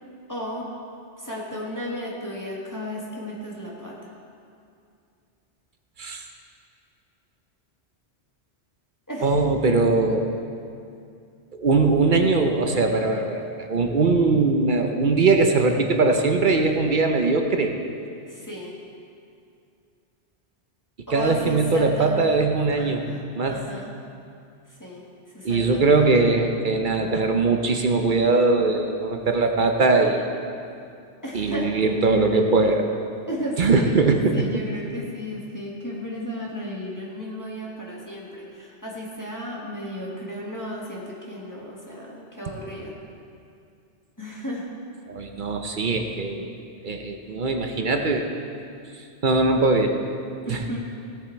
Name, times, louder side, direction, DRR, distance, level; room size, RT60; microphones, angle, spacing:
voice 1, 0.3-0.7 1.2-4.1 9.1-9.4 18.3-18.8 21.1-22.4 22.8-23.9 24.7-25.0 25.3-26.2 31.2-31.7 33.3-34.0 34.3-42.9 44.2-44.7 50.4-50.8, equal, 15° left, -5 dB, 1.5 m, -34 dB
voice 2, 9.2-10.3 11.6-17.8 21.1-23.0 23.3-23.6 25.4-30.3 31.3-32.8 33.6-34.5 45.1-46.5 46.8-48.3 49.2-50.0 50.5-50.6, right 3 dB, 50° right, 4 dB, 0.8 m, -21 dB
16.0 x 7.2 x 4.5 m, 2.5 s
omnidirectional pair, 1.2 m